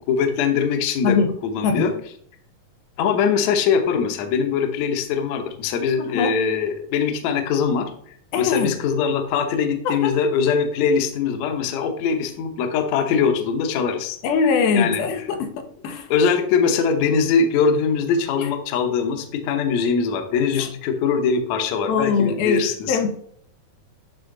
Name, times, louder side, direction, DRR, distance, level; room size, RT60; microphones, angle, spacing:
voice 1, 0.1-1.9 3.0-14.2 14.7-15.0 16.1-23.0, left 6 dB, 70° left, 5 dB, 1.8 m, -22 dB
voice 2, 6.0-6.3 8.3-8.7 9.9-10.1 14.2-15.5 15.8-16.1 18.4-18.5 20.5-20.7 21.8-23.1, left 5 dB, 90° left, 5 dB, 2.7 m, -21 dB
11.0 x 3.7 x 3.8 m, 0.63 s
omnidirectional pair, 4.2 m